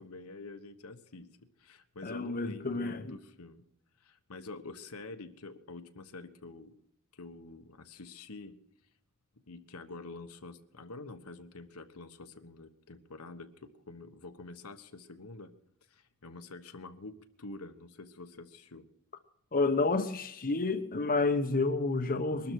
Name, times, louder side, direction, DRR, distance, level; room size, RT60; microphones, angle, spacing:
voice 1, 0.0-3.7 4.0-6.7 7.1-8.6 9.5-15.5 15.9-18.9, left 3 dB, 75° left, 1.3 m, -47 dB
voice 2, 2.0-3.1 19.5-22.5, left 3 dB, 40° left, 1.0 m, -30 dB
22.0 x 12.5 x 4.7 m
head